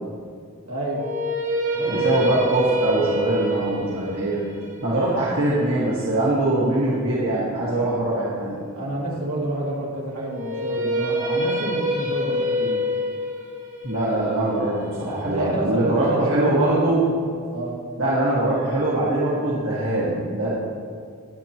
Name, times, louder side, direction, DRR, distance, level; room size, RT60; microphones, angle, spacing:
voice 1, 0.6-1.0 1.7-2.2 8.7-12.8 15.0-17.1 17.5-17.8, right 1 dB, 75° right, -4 dB, 2.7 m, -29 dB
sound 1, 0.9-7.0 10.3-16.4, equal, 35° right, 1.3 m, -27 dB
voice 2, 1.9-4.4 4.8-8.6 13.8-17.0 18.0-20.5, right 1 dB, 60° right, -8 dB, 1.7 m, -22 dB
19.5 x 6.9 x 3.0 m, 2.1 s
head